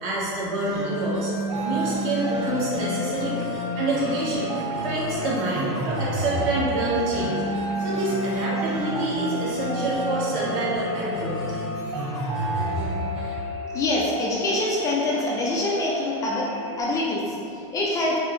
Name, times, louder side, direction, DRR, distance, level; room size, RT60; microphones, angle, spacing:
voice 1, 0.0-1.3 1.6-3.4 3.7-7.4 7.8-11.4, right 1 dB, 55° right, -7 dB, 1.3 m, -27 dB
sound 1, 0.5-13.4, equal, 35° right, 1.3 m, -31 dB
sound 2, 1.5-16.8, right 1 dB, 75° right, 0.4 m, -33 dB
voice 2, 13.7-16.5 16.8-18.2, left 2 dB, 20° left, -3 dB, 0.4 m, -25 dB
5.6 x 2.0 x 3.1 m, 2.8 s
supercardioid pair, 145°, 16 cm